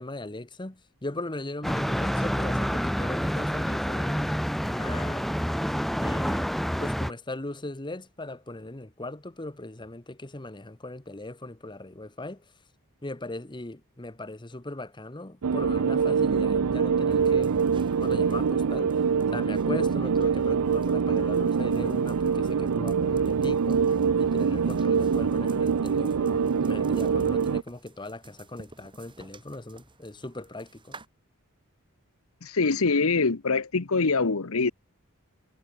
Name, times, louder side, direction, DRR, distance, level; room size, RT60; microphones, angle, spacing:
voice 1, 0.0-5.3 6.0-12.4 13.0-17.5 18.0-18.9 19.3-23.8 24.2-31.0, left 2 dB, 20° left, 1.2 m, -39 dB
sound 1, 1.6-7.1, equal, ahead, 0.5 m, -28 dB
sound 2, 15.4-27.6, right 6 dB, 90° right, 0.5 m, -24 dB
sound 3, 17.1-31.1, right 2 dB, 20° right, 3.3 m, -52 dB
voice 2, 32.4-34.7, left 4 dB, 70° left, 1.0 m, -24 dB
head